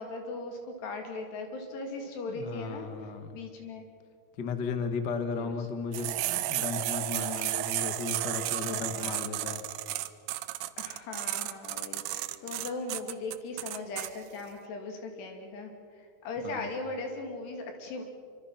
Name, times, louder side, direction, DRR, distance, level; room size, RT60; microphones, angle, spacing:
voice 1, 0.0-2.9 3.3-3.9 5.3-5.6 7.0-7.6 8.5-9.3 10.8-18.0, left 3 dB, 80° left, 3 dB, 5.0 m, -39 dB
voice 2, 2.3-3.3 4.4-9.6 16.4-16.6, left 5 dB, 55° left, 7 dB, 1.2 m, -35 dB
sound 1, 5.9-14.1, right 15 dB, 80° right, 2.7 m, -33 dB
25.5 x 25.5 x 5.8 m, 2.2 s
omnidirectional pair, 4.7 m